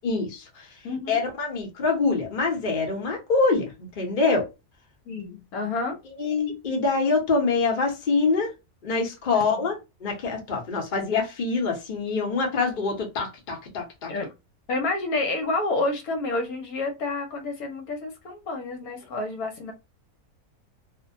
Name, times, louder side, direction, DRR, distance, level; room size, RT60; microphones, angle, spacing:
voice 1, 0.0-0.7 1.1-4.5 6.2-8.5 8.8-9.7 10.0-14.1, left 4 dB, 40° left, 0.8 m, -25 dB
voice 2, 0.8-1.2 5.1-6.0 9.3-9.7 14.1-14.3 14.7-19.7, left 2 dB, 75° left, 1.2 m, -29 dB
2.7 x 2.1 x 2.6 m
omnidirectional pair, 1.6 m